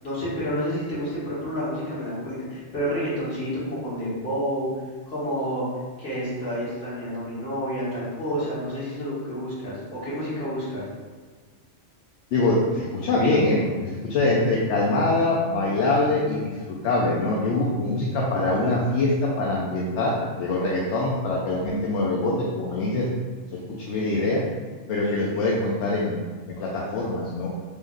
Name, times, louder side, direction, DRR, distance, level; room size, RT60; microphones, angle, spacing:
voice 1, 0.0-4.7 5.1-5.7 6.0-10.9 17.4-17.5 25.0-25.5, equal, 55° left, -10 dB, 1.8 m, -29 dB
voice 2, 12.3-23.1 23.8-24.4 24.9-26.2 26.5-27.5, left 2 dB, 70° left, -4 dB, 0.9 m, -24 dB
3.5 x 3.4 x 2.6 m, 1.5 s
omnidirectional pair, 1.3 m